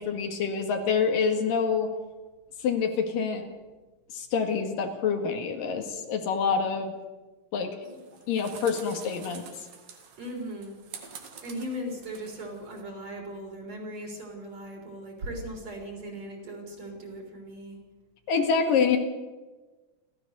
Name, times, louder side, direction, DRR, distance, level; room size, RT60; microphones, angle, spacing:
voice 1, 0.0-1.9 2.6-3.5 4.1-6.9 7.5-7.8 8.3-9.4 18.3-19.0, left 6 dB, 80° left, 4 dB, 3.6 m, -26 dB
sound 1, 7.8-12.8, right 6 dB, 75° right, 3.6 m, -47 dB
voice 2, 10.2-10.8 11.4-17.8, equal, 50° right, 1 dB, 5.7 m, -38 dB
30.0 x 13.5 x 6.9 m, 1.2 s
omnidirectional pair, 3.9 m